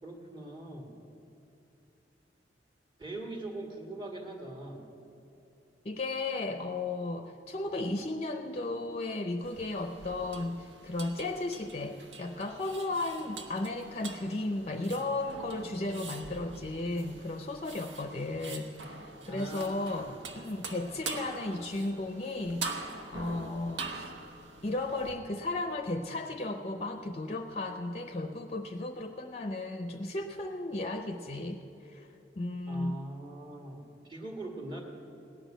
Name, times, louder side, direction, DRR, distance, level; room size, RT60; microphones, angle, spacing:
voice 1, 0.0-0.9 3.0-4.8 19.3-20.2 32.7-34.8, right 1 dB, 25° right, 2 dB, 1.8 m, -42 dB
voice 2, 5.8-22.7 23.1-24.1 24.6-32.1 32.4-33.0, left 2 dB, 35° left, 6 dB, 0.6 m, -35 dB
sound 1, 9.4-25.1, right 3 dB, 90° right, 1.0 m, -44 dB
18.0 x 6.4 x 9.1 m, 2.8 s
head